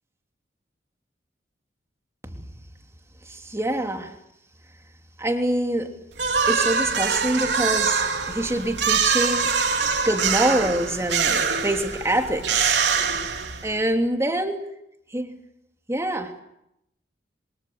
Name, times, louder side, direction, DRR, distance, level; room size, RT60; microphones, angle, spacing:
voice 1, 3.2-4.2 5.2-5.9 6.5-9.5 10.0-12.8 13.6-14.6 15.1-15.3 15.9-16.3, right 1 dB, 15° right, 4 dB, 3.1 m, -25 dB
sound 1, 6.2-13.8, right 6 dB, 80° right, 3.3 m, -24 dB
29.0 x 23.5 x 8.1 m, 0.82 s
head